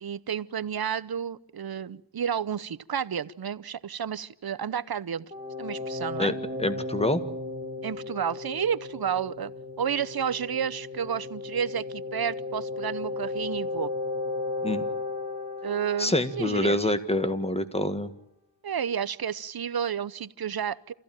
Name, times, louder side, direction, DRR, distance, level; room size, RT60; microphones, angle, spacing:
voice 1, 0.0-5.3 5.6-6.3 7.8-9.5 9.8-13.9 15.6-16.9 18.6-20.9, right 8 dB, 55° right, 15 dB, 0.9 m, -31 dB
sound 1, 5.3-16.9, left 3 dB, 15° right, 4.4 m, -35 dB
voice 2, 6.2-7.2 14.6-14.9 16.0-18.1, left 1 dB, 15° left, 11 dB, 1.9 m, -26 dB
27.5 x 15.5 x 9.1 m, 0.79 s
wide cardioid pair, 75°, 45 cm